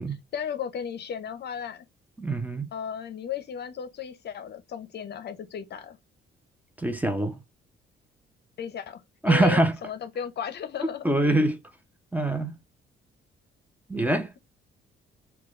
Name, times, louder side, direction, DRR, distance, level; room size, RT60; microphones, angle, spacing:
voice 1, 0.3-1.8 2.7-6.0 8.6-11.3, left 7 dB, 55° left, 0.6 m, -35 dB
voice 2, 2.2-2.7 6.8-7.4 9.2-9.7 11.0-11.6 12.1-12.6 13.9-14.4, right 1 dB, 10° right, 0.7 m, -24 dB
3.9 x 2.3 x 3.1 m
cardioid pair, 90°, 20 cm